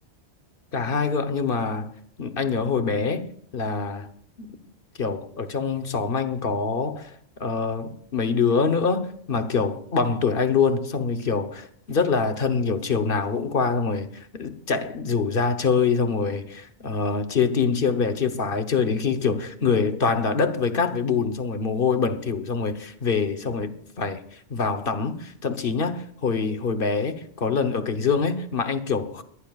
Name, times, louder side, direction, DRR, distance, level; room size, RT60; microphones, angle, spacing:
voice 1, 0.7-1.9 2.2-3.3 3.5-4.1 4.4-4.5 5.0-7.1 7.4-29.2, left 5 dB, 55° left, 1.2 m, -25 dB
23.0 x 14.5 x 2.4 m
omnidirectional pair, 1.1 m